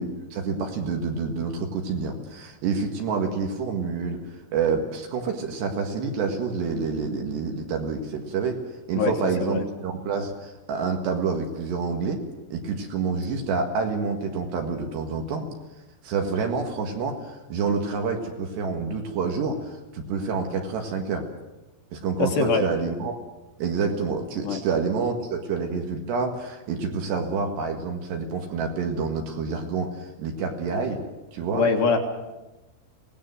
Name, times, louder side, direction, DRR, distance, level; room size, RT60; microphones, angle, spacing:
voice 1, 0.0-4.2 4.5-8.6 8.9-12.2 12.5-15.5 16.0-21.3 21.9-23.2 23.6-31.0 31.3-31.6, right 5 dB, 60° right, 3 dB, 3.6 m, -28 dB
voice 2, 22.2-22.7 24.4-24.6 31.5-32.0, left 4 dB, 65° left, 3 dB, 3.2 m, -23 dB
24.5 x 19.0 x 7.8 m, 1.1 s
omnidirectional pair, 5.9 m